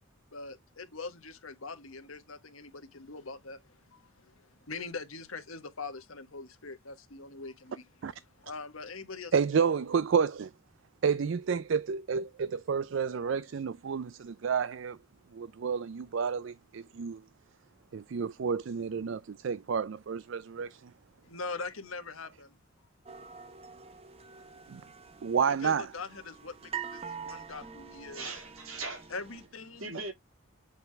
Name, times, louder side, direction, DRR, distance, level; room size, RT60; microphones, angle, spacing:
voice 1, 0.3-9.3 21.2-22.6 25.6-28.3 29.1-30.0, left 4 dB, 80° left, 1.5 m, -43 dB
voice 2, 9.3-10.5 11.0-15.0 15.3-17.2 17.9-20.8 24.7-24.8 25.2-25.9, right 6 dB, 65° right, 0.4 m, -30 dB
sound 1, 23.1-29.5, right 7 dB, 30° right, 0.8 m, -45 dB
voice 3, 28.1-29.1 29.8-30.1, right 3 dB, 85° right, 2.8 m, -39 dB
8.2 x 3.8 x 3.4 m
head